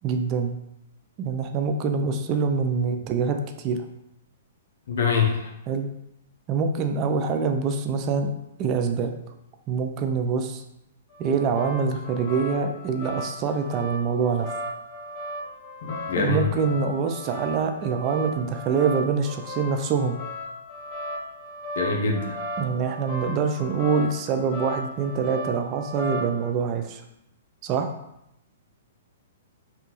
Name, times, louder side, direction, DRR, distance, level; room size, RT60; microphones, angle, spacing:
voice 1, 0.0-0.6 1.2-3.8 5.7-5.9 6.5-8.3 8.6-9.1 9.7-10.6 11.2-14.5 16.2-20.2 22.6-27.0 27.6-27.9, right 5 dB, 35° right, 6 dB, 0.3 m, -25 dB
voice 2, 4.9-5.5 15.8-16.5 21.8-22.4, left 4 dB, 65° left, 2 dB, 0.6 m, -24 dB
sound 1, 11.1-26.5, equal, 30° left, 1.2 m, -36 dB
2.7 x 2.3 x 2.9 m, 0.83 s
hypercardioid pair, 125°, 0 cm